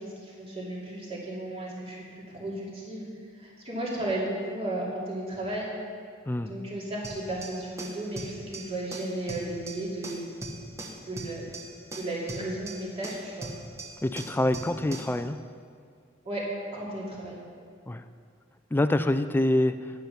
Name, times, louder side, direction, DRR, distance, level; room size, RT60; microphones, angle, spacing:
voice 1, 0.0-3.1 3.4-5.7 6.5-10.4 11.0-11.5 11.9-13.5 16.2-16.4 16.7-17.4, right 1 dB, 30° right, -5 dB, 2.7 m, -34 dB
sound 1, 7.0-15.2, right 2 dB, 15° right, 1.1 m, -41 dB
voice 2, 14.0-15.4 17.9-18.0 18.7-19.9, left 1 dB, 10° left, 10 dB, 0.3 m, -26 dB
10.5 x 9.2 x 5.7 m, 2.2 s
head